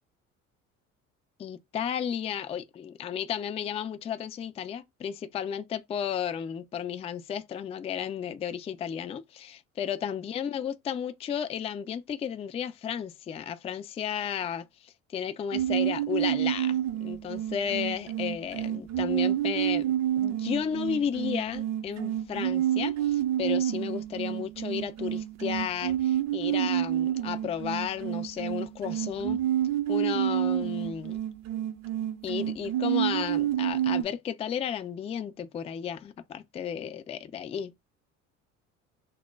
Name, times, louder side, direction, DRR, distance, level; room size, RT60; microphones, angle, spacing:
voice 1, 1.4-29.4 29.9-31.2 32.2-37.7, left 8 dB, 15° left, 0.3 m, -33 dB
sound 1, 15.5-34.0, right 11 dB, 45° right, 0.6 m, -29 dB
2.1 x 2.0 x 3.3 m
hypercardioid pair, 65°, 39 cm